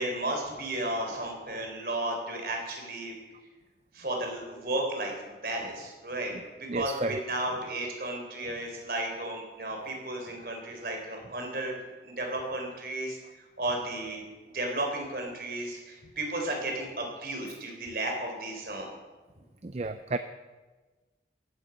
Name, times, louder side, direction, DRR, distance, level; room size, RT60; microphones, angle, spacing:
voice 1, 0.0-3.1 3.9-5.1 5.4-6.4 6.7-11.8 12.0-13.2 13.6-14.2 14.5-18.9, right 1 dB, 55° right, 2 dB, 4.0 m, -33 dB
voice 2, 6.7-7.2 19.6-20.2, right 3 dB, 40° right, 10 dB, 0.5 m, -31 dB
16.0 x 13.0 x 5.3 m, 1.3 s
head